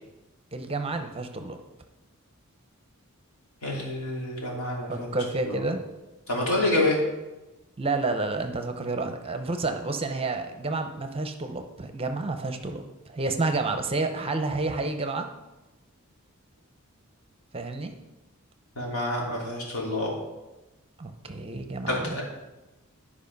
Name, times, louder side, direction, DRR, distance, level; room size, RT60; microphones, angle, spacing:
voice 1, 0.5-1.6 4.9-5.8 7.8-15.3 17.5-17.9 21.0-22.2, right 3 dB, 25° right, 6 dB, 0.7 m, -30 dB
voice 2, 3.6-5.1 5.5-5.6 6.3-7.0 18.8-20.1 21.9-22.2, left 1 dB, 85° left, -3 dB, 3.1 m, -27 dB
11.0 x 5.0 x 5.3 m, 1.1 s
head